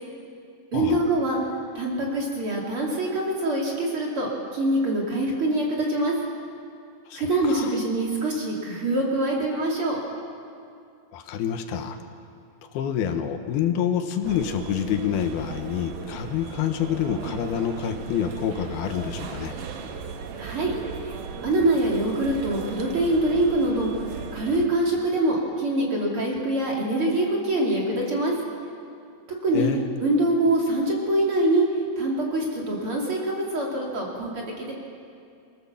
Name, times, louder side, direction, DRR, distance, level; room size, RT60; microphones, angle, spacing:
voice 1, 0.7-1.4 1.7-6.1 7.1-10.0 20.4-20.7 21.0-24.1 24.3-28.3 29.4-29.7 30.0-31.6 32.0-34.7, right 1 dB, 35° right, -2 dB, 3.3 m, -24 dB
voice 2, 7.1-7.7 11.1-12.0 12.7-19.5 29.5-29.9, left 8 dB, 85° left, 6 dB, 3.1 m, -27 dB
sound 1, 14.2-24.6, right 5 dB, 65° right, 2.7 m, -37 dB
25.0 x 15.5 x 7.1 m, 2.4 s
omnidirectional pair, 4.3 m